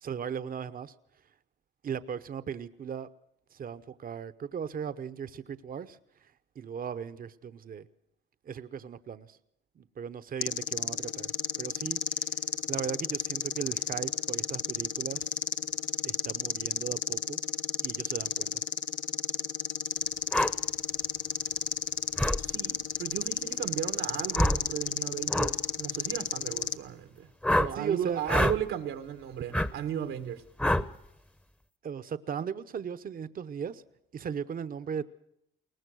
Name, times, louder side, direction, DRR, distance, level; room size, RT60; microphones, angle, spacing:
voice 1, 0.0-0.9 1.8-3.1 3.5-7.9 8.4-9.4 9.8-11.3 11.6-12.3 12.7-15.4 16.0-17.4 17.8-18.6 27.7-28.2 31.8-33.8 34.1-35.0, right 7 dB, 45° right, 0.9 m, -37 dB
sound 1, 10.4-26.8, left 9 dB, 75° left, 0.9 m, -32 dB
sound 2, 20.3-20.5 22.2-22.4 24.3-24.6 25.3-25.5 27.4-27.7 28.3-28.6 29.5-29.7 30.6-30.9, left 1 dB, 5° left, 0.9 m, -25 dB
voice 2, 22.4-27.3 27.6-30.4, right 10 dB, 85° right, 1.5 m, -35 dB
22.0 x 19.0 x 6.3 m
cardioid pair, 90°, 20 cm